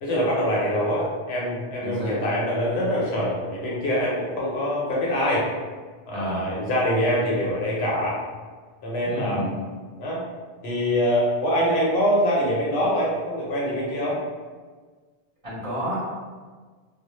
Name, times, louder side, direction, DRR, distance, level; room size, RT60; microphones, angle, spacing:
voice 1, 0.0-5.4 6.1-8.2 8.8-9.6 10.0-10.2 10.6-14.2, equal, 75° left, -5 dB, 0.9 m, -24 dB
voice 2, 1.8-2.2 6.1-6.5 9.0-9.5 15.4-16.0, equal, 35° right, -9 dB, 0.7 m, -30 dB
2.1 x 2.0 x 2.9 m, 1.4 s
omnidirectional pair, 1.1 m